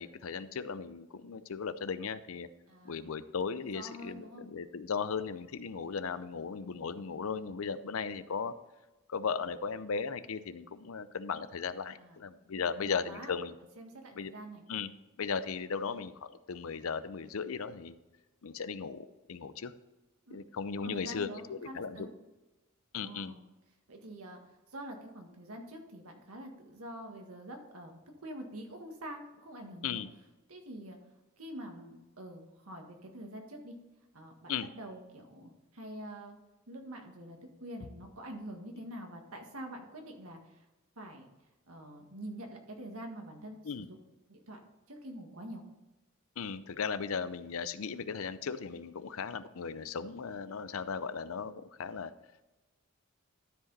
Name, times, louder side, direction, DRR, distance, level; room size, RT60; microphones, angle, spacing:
voice 1, 0.0-2.5 2.8-8.5 9.1-13.6 14.1-14.3 14.7-14.9 15.2-18.0 18.4-19.7 20.3-22.1 22.9-23.3 29.8-30.1 34.5-34.7 43.6-43.9 46.4-52.1, left 5 dB, 70° left, 14 dB, 0.5 m, -37 dB
voice 2, 2.7-3.2 3.6-4.5 11.9-12.2 12.5-13.3 13.8-14.7 20.3-20.4 20.8-22.1 23.0-23.4 23.9-24.4 24.7-30.0 30.5-31.0 31.4-33.7 34.1-36.4 36.7-40.6 40.9-41.3 41.7-44.0 44.3-44.6 44.9-45.6, right 1 dB, 80° right, 3 dB, 1.7 m, -46 dB
12.5 x 5.1 x 4.1 m, 1.1 s
head